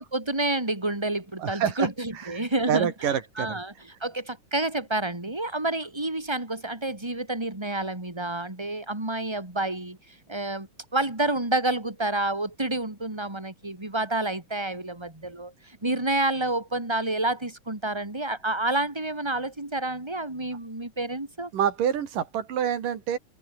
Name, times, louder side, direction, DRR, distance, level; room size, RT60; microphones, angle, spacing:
voice 1, 0.0-3.7 4.0-10.0 10.3-21.5, right 2 dB, 10° right, 3.1 m, -29 dB
voice 2, 1.4-1.9 2.2-2.3 2.7-3.6 21.5-23.2, right 8 dB, 75° right, 3.9 m, -27 dB
omnidirectional pair, 3.9 m